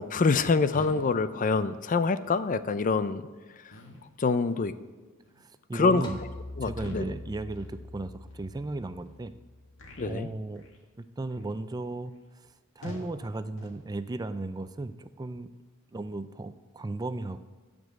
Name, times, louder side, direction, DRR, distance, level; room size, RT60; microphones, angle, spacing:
voice 1, 0.0-3.2 4.2-4.7 5.7-6.1 6.6-7.1 10.0-10.3, left 4 dB, 40° left, 13 dB, 0.5 m, -25 dB
sound 1, 0.7-1.1 1.4-1.7 2.2-2.5 3.0-3.2 3.7-4.1 4.5-4.8 5.2-5.5 6.0-6.2 6.7-7.2 7.5-7.8 8.3-8.4 9.0-9.2 9.8-10.2 10.5-10.8 11.3-11.5 12.1-12.2 12.8-13.2 13.6-13.8, equal, 75° left, 2.2 m, -46 dB
voice 2, 5.4-6.2 6.6-9.3 10.0-10.7 11.0-12.1 12.8-15.5 15.9-17.4, right 2 dB, 20° right, 12 dB, 0.4 m, -35 dB
sound 2, 6.0-10.4, left 2 dB, 25° left, 1.5 m, -44 dB
14.0 x 5.3 x 8.7 m, 1.3 s
head